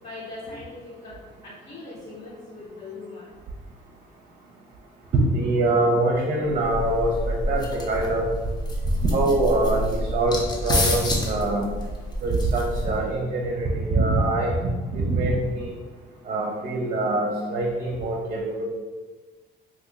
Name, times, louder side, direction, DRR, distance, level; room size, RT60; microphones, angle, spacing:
voice 1, 0.0-3.3, left 3 dB, 40° left, -9 dB, 1.0 m, -40 dB
voice 2, 5.1-8.3 9.1-11.7 12.2-14.6 14.9-15.7 16.3-18.6, right 2 dB, 45° right, -1 dB, 0.6 m, -24 dB
sound 1, 6.5-13.2, equal, 25° left, 0.6 m, -28 dB
2.9 x 2.5 x 3.7 m, 1.3 s
cardioid pair, 110°, 17 cm